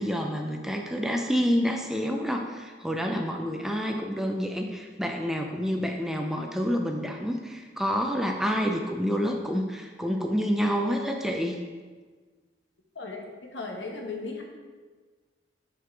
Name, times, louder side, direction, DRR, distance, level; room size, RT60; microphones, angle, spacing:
voice 1, 0.0-11.6, equal, ahead, 2 dB, 0.5 m, -28 dB
voice 2, 13.5-14.4, left 3 dB, 75° left, 1 dB, 1.2 m, -36 dB
7.9 x 4.7 x 4.6 m, 1.4 s
head